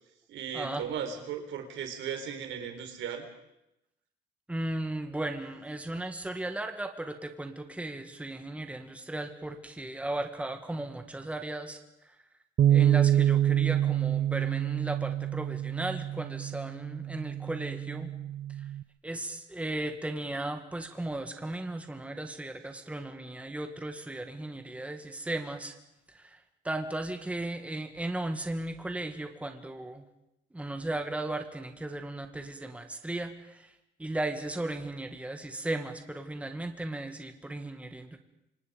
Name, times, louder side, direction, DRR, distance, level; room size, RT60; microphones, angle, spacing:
voice 1, 0.3-3.2, right 8 dB, 90° right, 5 dB, 4.6 m, -36 dB
voice 2, 4.5-11.8 12.0-12.2 12.7-18.1 19.0-25.7 26.1-30.0 30.5-33.7 34.0-38.2, right 2 dB, 5° right, 6 dB, 2.0 m, -36 dB
Bass guitar, 12.6-18.8, right 11 dB, 55° right, 0.8 m, -27 dB
27.5 x 26.0 x 5.3 m, 0.85 s
cardioid pair, 150°, 19 cm